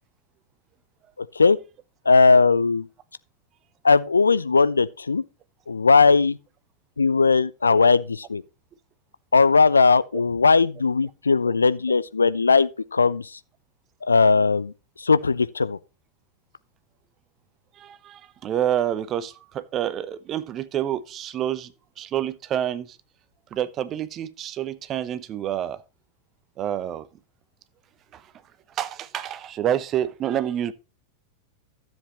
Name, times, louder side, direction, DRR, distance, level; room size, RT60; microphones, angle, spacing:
voice 1, 1.2-1.6 2.1-2.9 3.8-5.2 5.7-6.4 7.0-8.4 9.3-13.3 14.1-14.7 15.0-15.8, left 4 dB, 75° left, 0.5 m, -18 dB
voice 2, 17.8-21.7 22.0-23.0 23.5-25.8 26.6-27.1 28.1-28.2 28.8-30.7, right 10 dB, 30° right, 0.8 m, -28 dB
13.0 x 7.4 x 3.0 m
figure-of-eight pair, 90°, 0 cm